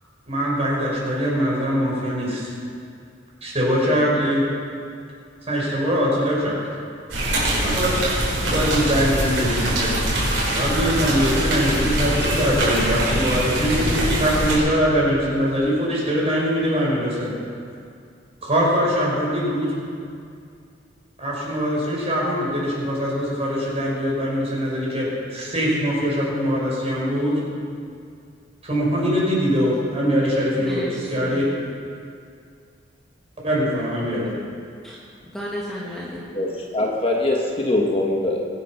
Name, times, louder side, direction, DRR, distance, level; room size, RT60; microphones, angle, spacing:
voice 1, 0.3-2.5 3.4-4.4 5.5-6.6 7.4-7.9 8.4-17.3 18.4-19.7 21.2-27.4 28.6-30.8 31.1-31.4 33.4-34.3, equal, 35° right, -4 dB, 4.9 m, -22 dB
sound 1, 7.1-14.6, right 1 dB, 65° right, 4.8 m, -23 dB
voice 2, 30.6-31.5 34.8-35.0 35.2-36.2, equal, ahead, -6 dB, 1.6 m, -33 dB
voice 3, 36.3-38.4, left 1 dB, 30° left, -1 dB, 1.4 m, -22 dB
22.5 x 8.4 x 5.9 m, 2.4 s
head